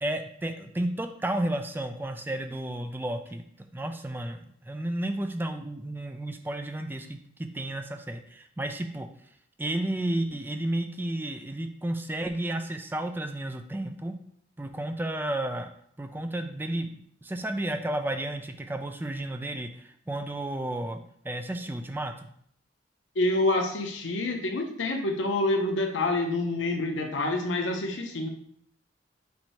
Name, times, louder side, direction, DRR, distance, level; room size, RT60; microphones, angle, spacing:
voice 1, 0.0-9.1 9.6-14.1 14.6-15.7 16.0-21.0 21.2-22.1, right 1 dB, 10° right, 6 dB, 0.3 m, -32 dB
voice 2, 23.2-28.3, left 2 dB, 90° left, 4 dB, 0.7 m, -27 dB
4.4 x 2.7 x 4.4 m, 0.65 s
head